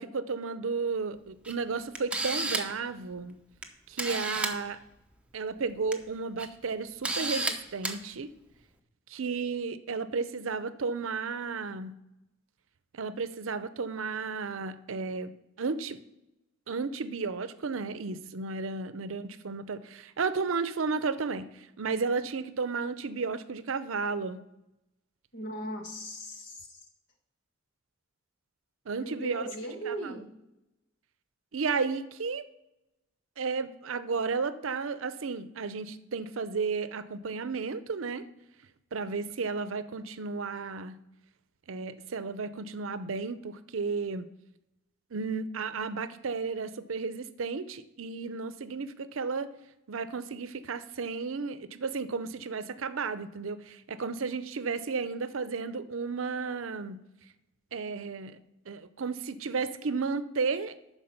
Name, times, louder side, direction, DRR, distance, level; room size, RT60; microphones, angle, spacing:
voice 1, 0.0-3.4 3.9-4.8 5.3-8.3 9.1-11.9 12.9-15.3 15.6-16.0 16.7-24.4 28.9-29.5 29.9-30.1 31.5-32.4 33.4-38.3 38.9-41.0 41.7-44.3 45.1-49.5 49.9-57.0 57.7-58.4 58.7-60.7, right 4 dB, 75° right, 13 dB, 0.6 m, -33 dB
Camera, 1.4-1.5 1.9-2.8 3.6-3.7 4.0-4.5 5.7-5.9 6.4-6.5 7.0-7.5 7.8-8.0, right 2 dB, 5° right, 0.8 m, -31 dB
voice 2, 25.3-26.8 28.9-30.3, right 1 dB, 60° left, 2 dB, 1.8 m, -38 dB
12.0 x 4.6 x 5.7 m, 0.92 s
head